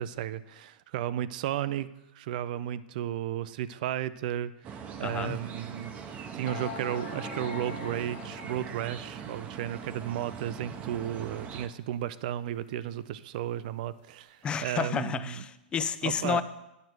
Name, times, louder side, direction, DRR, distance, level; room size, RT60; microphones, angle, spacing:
voice 1, 0.0-1.9 2.1-5.9 6.3-15.4 16.0-16.4, right 11 dB, 55° right, 16 dB, 0.4 m, -34 dB
sound 1, 4.6-11.7, right 6 dB, 25° right, 0.7 m, -41 dB
voice 2, 5.0-5.4 14.4-16.4, left 7 dB, 20° left, 13 dB, 0.3 m, -31 dB
sound 2, 5.3-5.4 6.1-6.2 6.5-8.9, left 8 dB, 45° left, 1.2 m, -42 dB
9.5 x 6.5 x 4.6 m, 0.93 s
hypercardioid pair, 135°, 5 cm